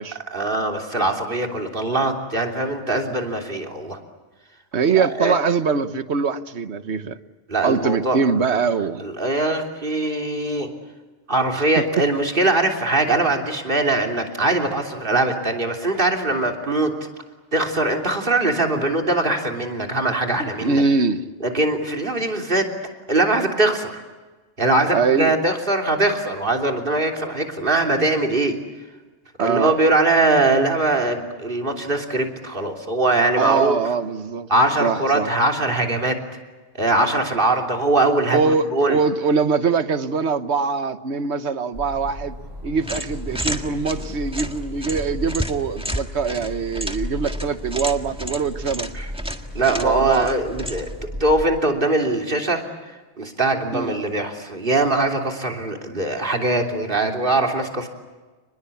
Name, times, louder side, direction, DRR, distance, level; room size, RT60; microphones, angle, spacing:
voice 1, 0.3-4.0 4.9-5.4 7.5-8.2 9.0-10.7 11.3-16.9 17.5-20.8 21.4-22.7 23.1-24.0 24.6-28.6 29.4-33.8 34.5-36.2 36.7-39.0 48.9-49.1 49.5-50.9 51.2-52.6 53.2-57.9, right 2 dB, 50° right, 3 dB, 3.4 m, -21 dB
voice 2, 4.7-7.2 7.6-9.0 11.8-11.9 20.4-21.2 24.9-25.4 29.4-29.8 33.4-34.5 34.8-35.3 38.3-42.3 42.6-48.9 49.8-50.3 53.7-53.9, right 5 dB, 70° right, 11 dB, 1.4 m, -22 dB
sound 1, 41.7-51.4, equal, 20° right, 6.8 m, -34 dB
sound 2, 42.8-51.0, equal, 5° right, 1.7 m, -32 dB
30.0 x 21.0 x 8.5 m, 1.3 s
omnidirectional pair, 1.2 m